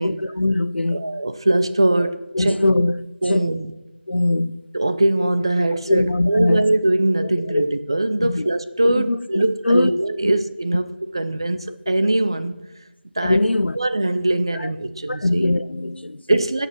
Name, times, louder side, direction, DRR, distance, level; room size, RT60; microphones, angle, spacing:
voice 1, 0.0-1.0 2.3-3.0 3.3-3.5 4.1-4.6 5.9-6.7 7.5-7.6 8.2-8.5 8.8-9.9 11.9-12.0 13.2-13.8 14.6-14.7 15.1-16.4, left 2 dB, 65° left, 16 dB, 0.6 m, -21 dB
voice 2, 0.9-2.6 3.2-3.7 4.7-12.6 13.2-13.4 13.8-15.5 16.3-16.7, right 1 dB, 25° right, 11 dB, 0.5 m, -21 dB
17.0 x 6.6 x 6.1 m, 1.0 s
figure-of-eight pair, 175°, 6 cm